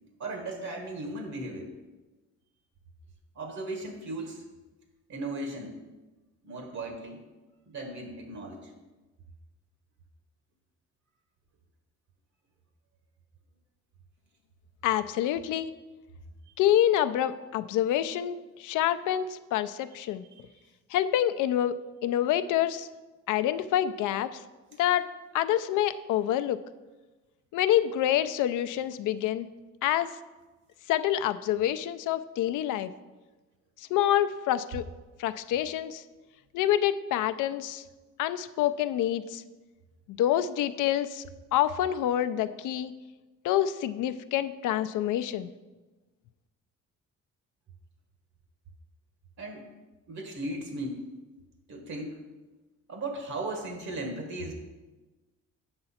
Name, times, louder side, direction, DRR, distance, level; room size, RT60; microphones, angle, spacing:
voice 1, 0.2-1.7 3.3-4.4 5.1-5.7 6.4-7.2 7.7-8.7 16.5-16.6 20.0-20.5 49.4-49.7 50.1-51.0 51.7-52.2 52.9-54.5, right 2 dB, 65° right, 3 dB, 1.4 m, -37 dB
voice 2, 14.8-15.7 16.6-20.2 20.9-21.7 22.0-22.9 23.3-24.4 24.8-25.1 25.3-26.6 27.5-29.5 29.8-30.1 30.9-32.9 33.9-34.8 35.2-36.0 36.5-37.8 38.2-39.4 40.1-41.3 41.5-42.9 43.4-45.5, left 11 dB, 85° left, 12 dB, 0.5 m, -27 dB
7.8 x 5.7 x 4.2 m, 1.2 s
cardioid pair, 90°, 30 cm